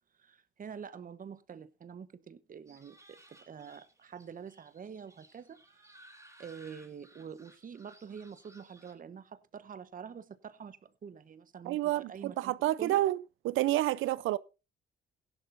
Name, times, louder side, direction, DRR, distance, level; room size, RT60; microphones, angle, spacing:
voice 1, 0.2-6.0 6.4-12.5 12.8-13.0, right 7 dB, 45° right, 1.1 m, -46 dB
sound 1, 2.7-8.9, right 1 dB, 15° right, 4.4 m, -59 dB
voice 2, 11.6-13.2 13.4-14.4, right 15 dB, 90° right, 0.6 m, -29 dB
16.5 x 11.0 x 2.6 m
cardioid pair, 90°, 20 cm